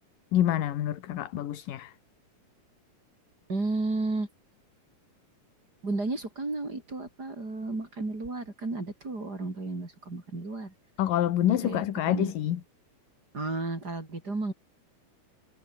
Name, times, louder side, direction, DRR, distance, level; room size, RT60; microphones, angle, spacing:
voice 1, 0.3-1.9 11.0-12.6, left 11 dB, 70° left, 3.2 m, -27 dB
voice 2, 3.5-4.3 5.8-10.7 11.4-12.3 13.3-14.5, right 2 dB, 25° right, 5.0 m, -33 dB
omnidirectional pair, 4.1 m